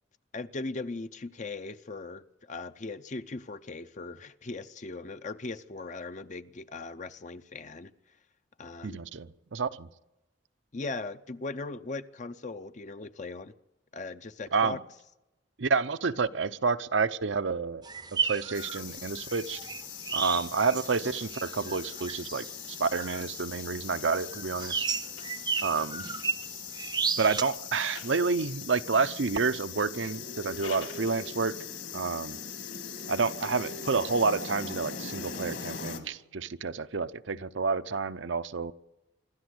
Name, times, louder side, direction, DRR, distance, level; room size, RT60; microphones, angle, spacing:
voice 1, 0.3-7.9 8.6-9.0 10.7-13.5 13.9-14.8, left 3 dB, 40° left, 0.6 m, -39 dB
voice 2, 8.8-9.9 14.5-14.8 15.6-17.9 18.1-19.6 20.1-24.9 25.6-26.1 27.2-31.6 31.9-32.4 33.1-38.7, right 4 dB, 70° right, 0.7 m, -29 dB
sound 1, 17.8-27.4, right 6 dB, 20° right, 0.6 m, -34 dB
sound 2, 18.5-36.0, left 7 dB, 60° left, 2.5 m, -41 dB
sound 3, 22.6-26.6 27.5-28.8 30.3-31.1, left 5 dB, 85° left, 3.5 m, -51 dB
26.0 x 12.5 x 8.0 m
head